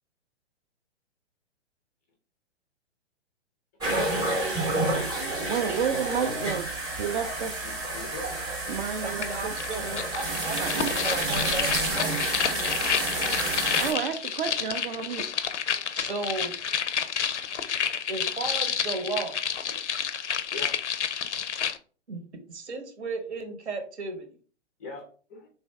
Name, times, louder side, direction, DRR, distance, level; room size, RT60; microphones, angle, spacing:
sound 1, 3.8-13.9, right 2 dB, 10° right, 0.7 m, -29 dB
voice 1, 5.0-6.7 7.0-7.6 8.7-9.6 10.6-10.7 13.8-15.3, right 7 dB, 50° right, 5 dB, 0.4 m, -31 dB
voice 2, 7.6-8.3 19.6-19.8 20.5-20.8 24.8-25.5, left 3 dB, 15° left, 1 dB, 0.4 m, -41 dB
voice 3, 9.0-12.3 15.9-16.5 18.1-19.4 22.1-24.4, right 3 dB, 70° right, 5 dB, 1.0 m, -35 dB
sound 2, 9.2-9.3 9.6-21.8, left 8 dB, 85° left, 0.5 m, -30 dB
3.2 x 2.5 x 3.4 m, 0.41 s
figure-of-eight pair, 120°, 34 cm